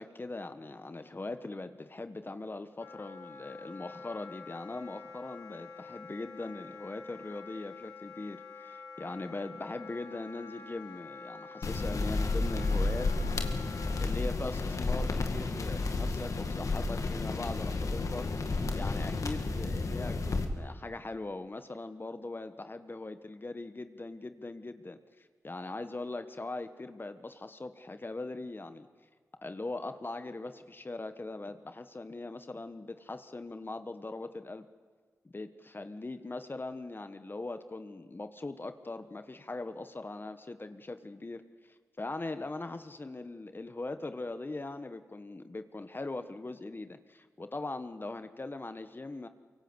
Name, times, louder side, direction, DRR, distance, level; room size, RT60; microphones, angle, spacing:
voice 1, 0.0-13.1 14.0-18.3 18.8-25.0 25.4-28.9 29.4-34.7 35.3-41.4 42.0-49.3, left 2 dB, 40° left, 10 dB, 1.4 m, -40 dB
Wind instrument woodwind instrument, 2.8-14.1, left 4 dB, 90° left, 3.5 m, -48 dB
sound 1, 11.6-20.5, left 3 dB, 70° left, 2.2 m, -32 dB
24.0 x 23.5 x 8.2 m, 1.5 s
cardioid pair, 40°, 6 cm